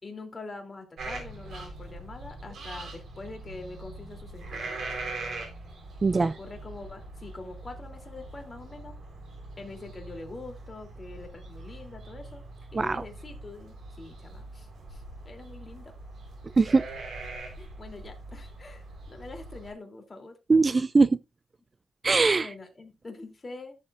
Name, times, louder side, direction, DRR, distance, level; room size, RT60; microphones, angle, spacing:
voice 1, 0.0-5.0 6.2-8.9 9.6-12.4 12.7-15.9 17.6-20.4 22.4-23.8, left 3 dB, 30° left, 3.3 m, -44 dB
sound 1, 1.0-19.7, right 2 dB, 70° right, 4.4 m, -42 dB
voice 2, 6.0-6.3 12.7-13.0 16.4-16.8 20.5-21.2 22.0-22.5, right 3 dB, 30° right, 0.4 m, -21 dB
14.0 x 7.5 x 2.6 m
cardioid pair, 95°, 0 cm